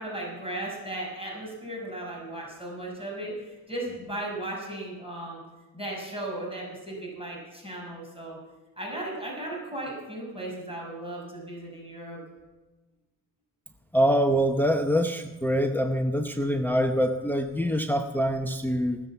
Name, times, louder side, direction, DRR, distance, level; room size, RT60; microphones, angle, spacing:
voice 1, 0.0-5.4 5.7-8.4 8.8-12.2, right 1 dB, 10° right, -3 dB, 5.8 m, -36 dB
voice 2, 13.9-19.0, equal, 5° left, 5 dB, 0.9 m, -25 dB
18.5 x 7.6 x 7.2 m, 1.2 s
cardioid pair, 90°, 44 cm